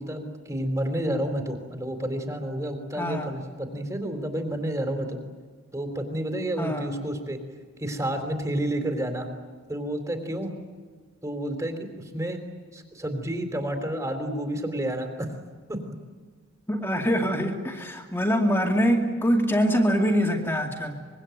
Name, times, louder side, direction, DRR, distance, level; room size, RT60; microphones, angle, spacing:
voice 1, 0.0-5.2 5.7-7.4 7.8-9.3 9.7-10.5 11.2-12.4 12.7-15.3 15.7-15.8, right 1 dB, 15° right, 6 dB, 3.7 m, -30 dB
voice 2, 3.0-3.3 6.6-6.9 16.7-21.0, equal, 10° left, 1 dB, 2.3 m, -24 dB
25.5 x 23.0 x 9.4 m, 1.5 s
head